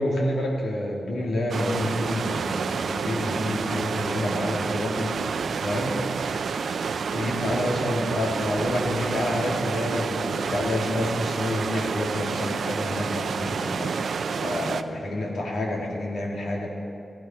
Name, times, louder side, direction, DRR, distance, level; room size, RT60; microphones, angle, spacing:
voice 1, 0.0-5.1 5.6-6.0 7.1-16.7, left 1 dB, 85° left, -2 dB, 2.9 m, -28 dB
sound 1, 1.5-14.8, right 5 dB, 70° right, 0.5 m, -29 dB
16.5 x 16.5 x 4.6 m, 2.4 s
wide cardioid pair, 170°, 0 cm